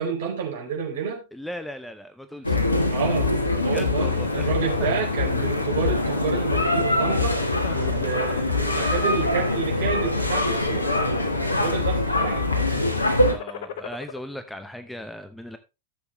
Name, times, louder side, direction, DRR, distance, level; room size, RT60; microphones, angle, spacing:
voice 1, 0.0-1.2 2.9-7.4 7.7-11.2 11.5-13.0, right 6 dB, 55° right, -1 dB, 4.5 m, -30 dB
voice 2, 1.3-2.6 3.6-4.5 4.8-5.1 7.6-7.8 13.2-15.6, equal, 5° left, 9 dB, 0.8 m, -37 dB
sound 1, 2.4-13.3, left 2 dB, 80° left, 1.5 m, -23 dB
sound 2, 4.2-5.0 5.5-5.7 6.0-7.3 7.7-8.8 9.4-9.9 10.5-11.2 11.5-12.0 12.9-14.2, left 8 dB, 55° left, 1.1 m, -39 dB
13.5 x 7.2 x 3.1 m, 0.26 s
figure-of-eight pair, 90°, 0 cm